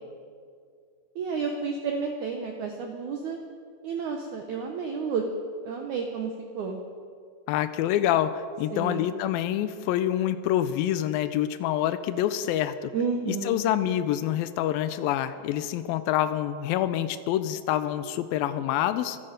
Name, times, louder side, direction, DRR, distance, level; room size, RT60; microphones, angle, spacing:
voice 1, 1.2-3.4 3.8-5.3 5.6-6.8 8.7-9.1 12.9-13.6, right 5 dB, 70° right, 3 dB, 1.9 m, -31 dB
voice 2, 7.5-12.9 13.3-19.2, left 11 dB, 85° left, 12 dB, 2.2 m, -26 dB
26.0 x 9.9 x 5.2 m, 2.2 s
omnidirectional pair, 4.6 m